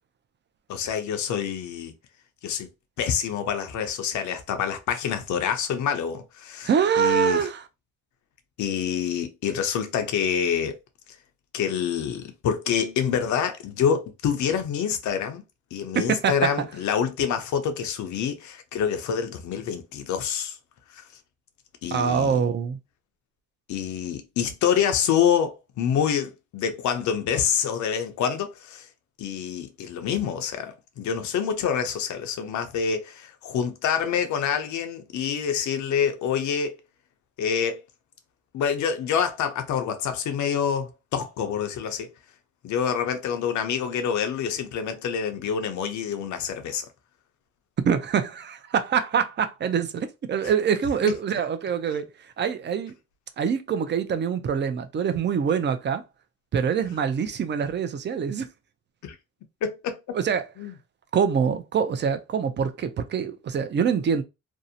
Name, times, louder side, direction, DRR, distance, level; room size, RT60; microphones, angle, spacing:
voice 1, 0.7-1.9 2.4-2.7 3.0-6.7 7.0-7.5 8.6-10.8 11.5-15.4 15.7-20.6 20.9-21.0 21.8-22.4 23.7-28.9 29.2-36.8 37.4-37.8 38.5-42.1 42.6-46.9 50.4-50.5 59.0-59.2 59.6-60.0 60.6-60.7, left 7 dB, 70° left, 0.6 m, -27 dB
voice 2, 6.6-7.6 15.9-16.5 21.9-22.8 47.8-52.9 53.4-56.0 56.5-58.5 60.1-60.4 61.1-64.2, right 7 dB, 35° right, 0.4 m, -25 dB
2.6 x 2.0 x 2.6 m
cardioid pair, 90°, 30 cm